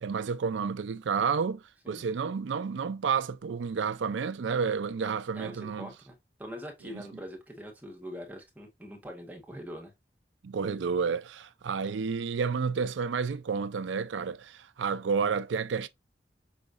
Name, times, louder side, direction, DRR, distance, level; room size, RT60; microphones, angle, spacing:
voice 1, 0.0-5.9 6.9-7.0 10.4-15.9, right 5 dB, 85° right, 0.4 m, -30 dB
voice 2, 5.3-9.9, equal, 10° right, 1.3 m, -43 dB
5.7 x 3.0 x 2.5 m
head